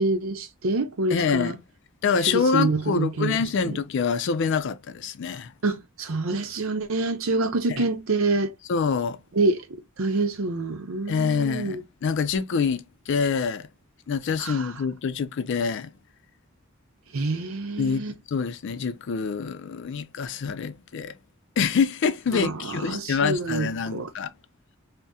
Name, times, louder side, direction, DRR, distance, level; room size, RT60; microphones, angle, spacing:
voice 1, 0.0-1.5 2.3-3.4 3.6-3.8 5.6-8.5 9.4-9.6 10.0-11.8 14.4-14.7 17.1-18.1 22.3-24.1, right 3 dB, 85° right, 0.7 m, -26 dB
voice 2, 1.1-1.6 2.0-5.5 7.7-7.8 8.7-9.2 11.1-13.7 14.1-15.9 17.8-21.1 21.6-24.3, left 5 dB, 60° left, 0.4 m, -26 dB
2.7 x 2.1 x 3.5 m
head